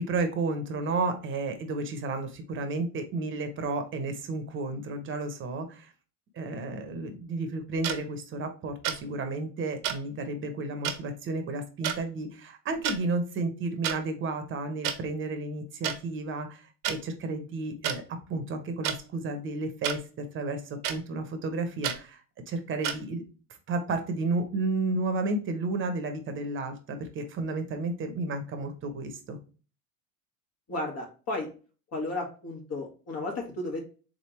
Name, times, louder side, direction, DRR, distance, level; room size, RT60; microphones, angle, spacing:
voice 1, 0.0-5.9 6.3-23.2 23.7-29.4, right 3 dB, 25° right, 6 dB, 1.0 m, -32 dB
sound 1, 7.8-8.0 8.8-9.0 9.8-10.0 10.8-11.0 11.8-12.0 12.7-13.0 13.8-14.0 14.8-15.0 15.8-16.0 16.8-17.0 17.8-18.0 18.8-19.0 19.8-20.0 20.8-21.0 21.8-22.0 22.8-23.0, right 10 dB, 65° right, 1.0 m, -29 dB
voice 2, 30.7-31.5 31.9-33.8, left 2 dB, 35° left, 1 dB, 1.5 m, -33 dB
3.8 x 3.6 x 2.9 m, 0.36 s
supercardioid pair, 125°, 44 cm